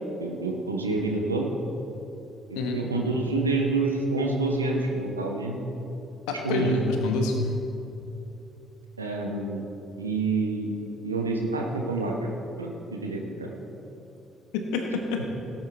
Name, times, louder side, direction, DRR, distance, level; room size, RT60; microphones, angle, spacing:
voice 1, 0.2-1.5 2.5-5.6 6.3-6.8 9.0-9.6 10.0-10.7 11.0-12.1 12.6-12.7 13.0-13.5, right 3 dB, 90° right, 1 dB, 1.1 m, -27 dB
voice 2, 6.3-7.3 14.5-15.2, left 3 dB, 70° left, 3 dB, 1.4 m, -27 dB
17.5 x 8.9 x 3.5 m, 2.8 s
figure-of-eight pair, 45°, 0 cm